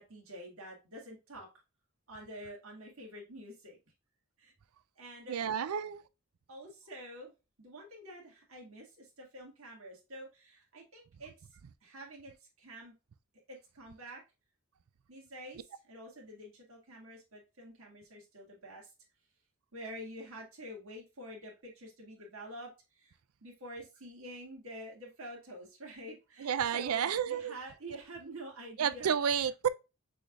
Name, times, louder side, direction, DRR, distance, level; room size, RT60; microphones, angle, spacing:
voice 1, 0.0-1.5 2.1-3.8 4.4-4.5 5.0-5.4 6.5-7.3 7.6-11.3 11.8-12.9 13.5-14.2 15.1-18.9 19.7-23.1 23.4-29.5, right 1 dB, 70° right, 1.9 m, -48 dB
voice 2, 5.3-6.0 26.4-27.5 28.8-29.7, right 8 dB, 90° right, 0.4 m, -30 dB
6.1 x 3.4 x 2.3 m
head